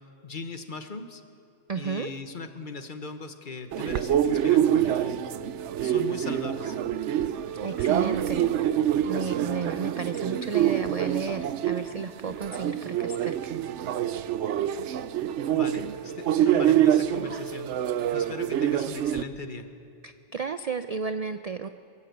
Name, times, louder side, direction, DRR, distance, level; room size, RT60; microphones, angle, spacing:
voice 1, 0.2-1.2 1.7-5.2 5.8-6.8 15.5-17.7 18.1-19.7, left 3 dB, 45° left, 8 dB, 1.2 m, -39 dB
voice 2, 1.7-2.1 7.6-8.8 9.1-13.5 20.0-21.7, right 5 dB, 50° right, 10 dB, 0.4 m, -33 dB
sound 1, 3.7-19.2, right 10 dB, 75° right, 0.9 m, -26 dB
23.0 x 14.5 x 8.0 m, 2.5 s
omnidirectional pair, 1.3 m